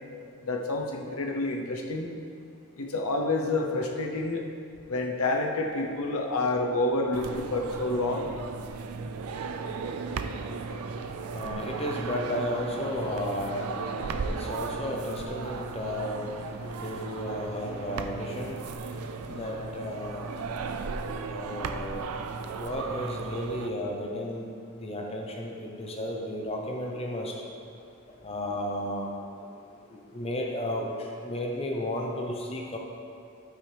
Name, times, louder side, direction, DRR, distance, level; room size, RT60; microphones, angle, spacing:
voice 1, 0.4-2.1 2.8-4.4 4.9-8.3, left 2 dB, 75° left, 1 dB, 0.8 m, -28 dB
sound 1, 7.1-23.7, right 4 dB, 90° right, 0.5 m, -36 dB
voice 2, 11.0-20.3 21.3-22.1 22.5-27.3 28.2-29.1 30.1-32.8, left 1 dB, 25° left, 0 dB, 0.8 m, -34 dB
12.5 x 6.3 x 3.4 m, 2.5 s
head